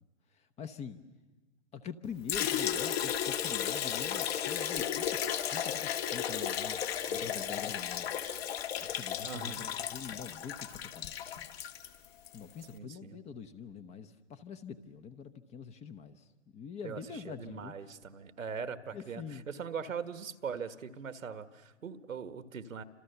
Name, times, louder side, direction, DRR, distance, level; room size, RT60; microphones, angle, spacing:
voice 1, 0.6-1.0 1.7-8.1 8.8-11.1 12.3-16.2 16.5-17.7 18.9-19.5, left 6 dB, 15° left, 11 dB, 0.9 m, -45 dB
Liquid, 2.3-12.4, left 9 dB, 50° left, 2.1 m, -34 dB
voice 2, 9.2-9.7 12.7-13.2 16.8-22.8, right 6 dB, 80° right, 12 dB, 1.7 m, -41 dB
30.0 x 26.5 x 6.9 m, 1.2 s
hypercardioid pair, 130°, 39 cm